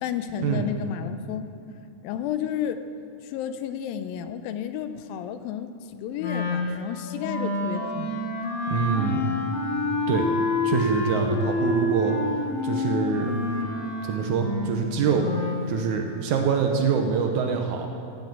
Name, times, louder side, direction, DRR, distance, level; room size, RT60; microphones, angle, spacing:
voice 1, 0.0-1.5 2.0-2.8 3.2-8.2, left 9 dB, 85° left, 10 dB, 2.4 m, -32 dB
Wind instrument woodwind instrument, 6.2-15.7, left 2 dB, 50° left, 2.5 m, -28 dB
voice 2, 8.7-9.2 10.1-10.3 10.6-12.1 12.6-13.3 14.0-15.3 15.7-17.9, right 6 dB, 70° right, 3 dB, 2.0 m, -25 dB
16.0 x 7.4 x 7.8 m, 2.6 s
omnidirectional pair, 4.1 m